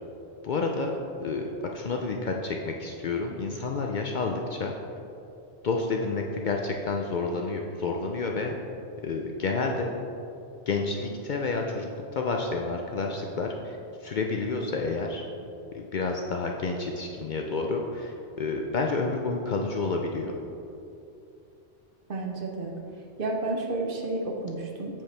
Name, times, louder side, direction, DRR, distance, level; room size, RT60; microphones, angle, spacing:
voice 1, 0.4-0.9 1.2-4.7 5.6-8.5 9.0-9.9 10.7-15.3 15.7-20.3, left 3 dB, 55° left, 2 dB, 0.6 m, -30 dB
voice 2, 22.1-22.7 23.2-25.0, right 2 dB, 55° right, 1 dB, 0.9 m, -31 dB
7.5 x 7.2 x 3.3 m, 2.7 s
omnidirectional pair, 1.1 m